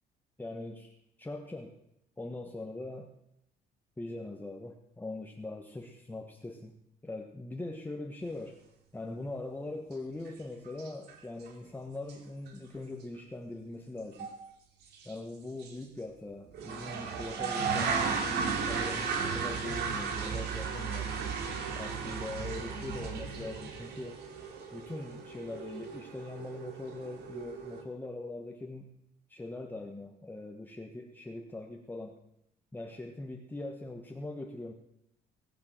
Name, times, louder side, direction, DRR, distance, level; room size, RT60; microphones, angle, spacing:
voice 1, 0.4-1.7 2.2-3.1 4.0-6.8 7.0-8.6 8.9-14.3 15.0-21.1 21.7-24.2 24.7-28.9 29.3-32.2 32.7-34.7, left 2 dB, 10° left, 3 dB, 1.4 m, -41 dB
sound 1, 10.3-10.4 10.7-11.1 11.5-11.6 12.1-12.2 12.5-12.6 14.2-14.4 14.9-15.1 15.6-15.7 16.5-27.8, right 5 dB, 75° right, 2.8 m, -35 dB
19.5 x 7.6 x 7.6 m, 0.81 s
cardioid pair, 110°, 17 cm